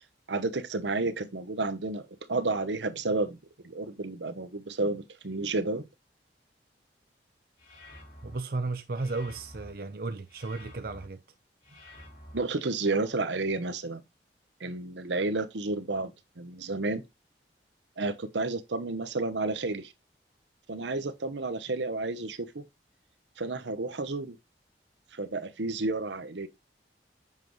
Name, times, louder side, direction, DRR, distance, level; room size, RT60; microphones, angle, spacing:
voice 1, 0.3-2.0 2.3-3.4 3.6-5.9 12.3-14.0 14.6-17.0 18.0-19.9 20.7-22.6 23.4-24.3 25.1-26.5, right 3 dB, 90° right, 0.9 m, -31 dB
sound 1, 7.6-8.4 8.9-9.7 10.3-11.1 11.6-12.4, left 1 dB, 50° left, 2.7 m, -49 dB
voice 2, 8.2-11.2, right 3 dB, 55° right, 0.6 m, -34 dB
7.5 x 5.3 x 3.1 m
head